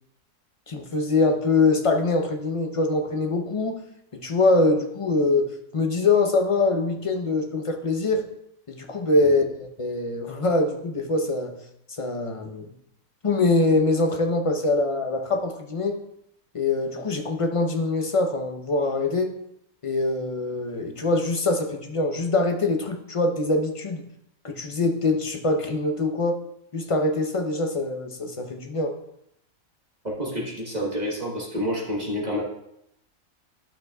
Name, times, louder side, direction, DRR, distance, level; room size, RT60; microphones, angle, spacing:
voice 1, 0.7-3.8 4.1-8.2 8.7-9.4 9.8-11.5 12.0-12.7 13.2-16.0 16.5-19.3 19.8-24.0 24.4-26.4 26.7-29.0, left 2 dB, 30° left, 3 dB, 0.6 m, -23 dB
voice 2, 30.0-32.4, equal, 30° right, -3 dB, 1.3 m, -28 dB
12.0 x 6.1 x 2.3 m, 0.76 s
omnidirectional pair, 1.5 m